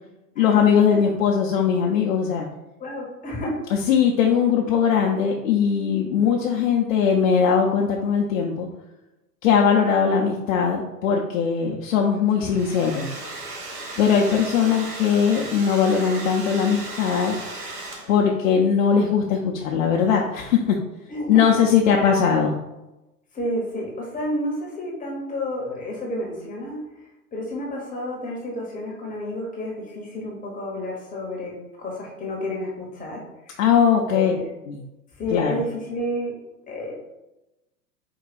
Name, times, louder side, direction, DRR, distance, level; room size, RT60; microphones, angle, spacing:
voice 1, 0.4-2.5 3.9-8.7 9.4-13.1 14.0-17.4 18.1-20.6 21.3-22.5 33.6-34.3 34.7-34.8 35.3-35.6, left 7 dB, 55° left, 0 dB, 0.7 m, -20 dB
voice 2, 2.8-3.6 14.0-14.5 18.3-18.5 21.1-21.6 21.9-22.2 23.3-26.8 27.3-33.2 33.5-33.6 34.1-34.5 35.2-36.3 36.7-36.9, left 1 dB, 15° left, -2 dB, 0.9 m, -30 dB
Domestic sounds home sounds, 12.3-18.4, right 2 dB, 70° right, 1.4 m, -36 dB
4.5 x 2.2 x 4.1 m, 0.98 s
figure-of-eight pair, 100°, 48 cm